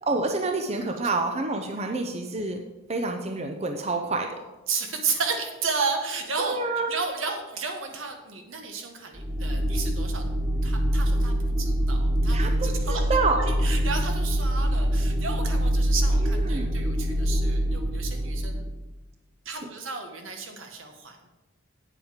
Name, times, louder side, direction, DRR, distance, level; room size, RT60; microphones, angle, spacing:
voice 1, 0.0-2.6 2.9-4.3 6.4-6.9 12.3-13.4 16.2-16.7, right 3 dB, 30° right, 4 dB, 0.7 m, -28 dB
voice 2, 4.7-10.2 10.6-13.1 13.4-18.7 19.4-21.3, right 4 dB, 75° right, 4 dB, 1.5 m, -33 dB
sound 1, 9.2-18.8, right 1 dB, 10° right, 1.5 m, -25 dB
9.0 x 7.6 x 5.1 m, 1.1 s
head